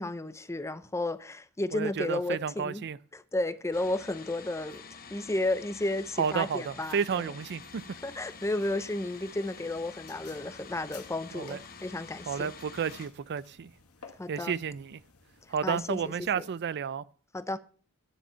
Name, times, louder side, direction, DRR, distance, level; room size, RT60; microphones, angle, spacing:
voice 1, 0.0-2.8 3.1-4.8 5.1-7.0 8.0-12.5 14.2-14.5 15.6-16.0 16.3-16.4 17.3-17.6, left 2 dB, 15° left, 0.6 m, -32 dB
voice 2, 1.7-3.0 6.2-7.8 11.3-11.6 12.3-13.7 14.3-15.0 15.5-17.0, right 7 dB, 50° right, 0.4 m, -31 dB
sound 1, 3.7-13.1, left 5 dB, 40° left, 1.1 m, -48 dB
sound 2, 7.7-16.3, left 5 dB, 70° left, 1.9 m, -57 dB
10.0 x 7.2 x 5.5 m
head